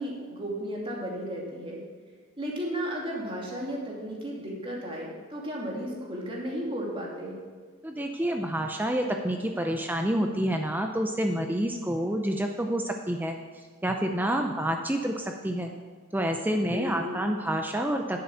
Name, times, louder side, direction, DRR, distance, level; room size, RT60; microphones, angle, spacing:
voice 1, 0.0-1.8 2.4-7.4 16.7-17.2, equal, 25° right, -3 dB, 2.7 m, -34 dB
voice 2, 7.8-15.7 16.1-18.2, right 1 dB, 10° right, 3 dB, 0.6 m, -28 dB
11.0 x 7.7 x 7.1 m, 1.6 s
head